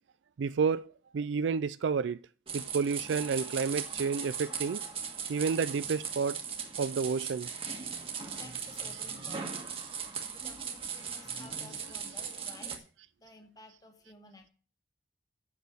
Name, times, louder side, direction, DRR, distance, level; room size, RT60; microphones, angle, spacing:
voice 1, 0.4-2.2 2.5-4.8 5.3-6.4 6.8-7.5 8.2-8.3 11.8-11.9, right 5 dB, 90° right, 0.4 m, -30 dB
sound 1, 2.5-12.8, right 6 dB, 30° right, 1.5 m, -38 dB
voice 2, 8.4-9.6 10.3-12.7 13.2-14.5, left 2 dB, 20° left, 1.4 m, -54 dB
8.4 x 6.2 x 7.9 m
head